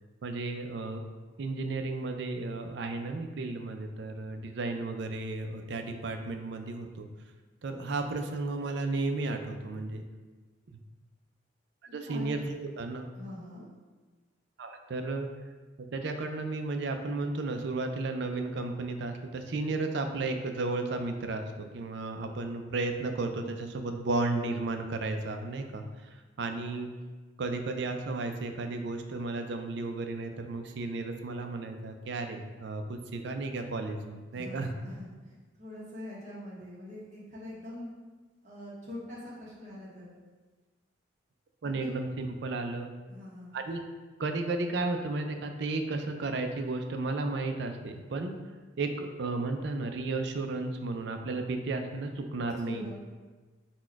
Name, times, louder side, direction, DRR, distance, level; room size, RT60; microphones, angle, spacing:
voice 1, 0.2-1.0 1.4-7.1 7.6-10.0 10.7-10.8 11.9-13.1 14.6-15.3 15.8-25.8 26.4-26.9 27.4-34.7 41.6-42.9 43.5-43.8 44.2-48.4 48.8-52.9, right 3 dB, 60° right, 6 dB, 0.4 m, -33 dB
voice 2, 12.1-12.4 13.1-13.7 34.3-37.9 38.4-40.1 41.8-41.9 43.1-43.6 52.6-52.9, left 1 dB, 40° right, -6 dB, 1.0 m, -43 dB
4.1 x 2.2 x 4.5 m, 1.3 s
head